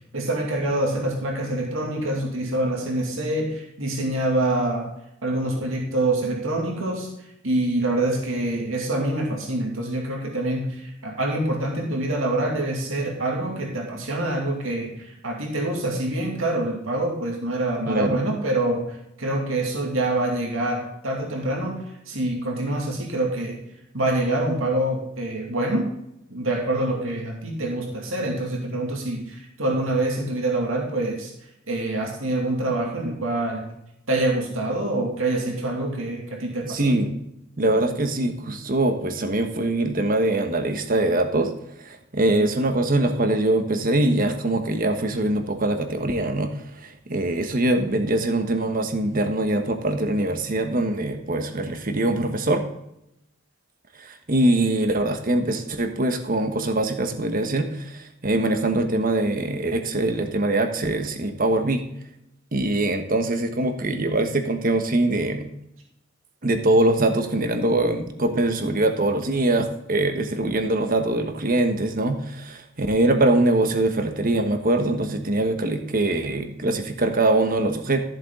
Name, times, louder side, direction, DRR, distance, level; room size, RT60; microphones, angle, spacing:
voice 1, 0.1-4.9 5.2-7.1 7.4-23.6 23.9-25.9 26.3-31.3 31.7-33.7 34.1-37.0, right 1 dB, 90° right, 0 dB, 2.4 m, -26 dB
voice 2, 17.8-18.3 36.6-37.2 37.6-52.6 54.0-61.8 62.5-65.5 66.4-78.0, right 2 dB, 45° right, 7 dB, 1.3 m, -23 dB
13.5 x 7.3 x 3.8 m, 0.81 s
head